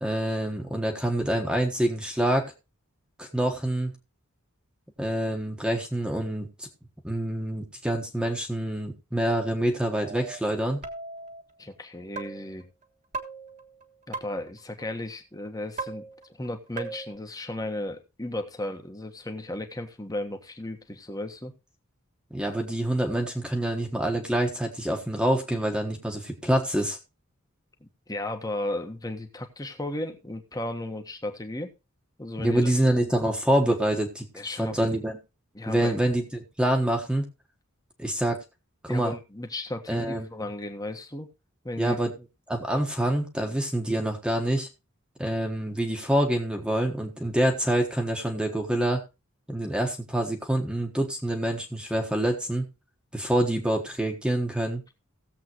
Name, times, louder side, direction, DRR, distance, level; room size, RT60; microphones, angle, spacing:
voice 1, 0.0-2.5 3.2-3.9 5.0-6.7 7.0-10.8 22.3-27.0 32.4-34.3 34.6-35.2 35.7-37.2 38.0-38.4 38.8-39.1 39.9-40.5 41.8-42.1 42.5-44.7 45.2-49.0 49.5-52.7 53.1-54.8, right 1 dB, 5° right, 2 dB, 1.3 m, -26 dB
sound 1, 10.0-10.4 10.8-11.4 12.2-12.6 13.1-14.6 15.8-16.5 16.8-17.1, right 4 dB, 35° right, 1.5 m, -38 dB
voice 2, 11.6-12.7 14.1-16.1 16.4-21.5 27.8-31.7 32.2-32.7 34.3-35.0 35.5-36.0 38.9-41.3 41.6-42.0 42.7-42.8, left 1 dB, 15° left, 5 dB, 1.3 m, -35 dB
17.5 x 7.5 x 3.0 m, 0.27 s
head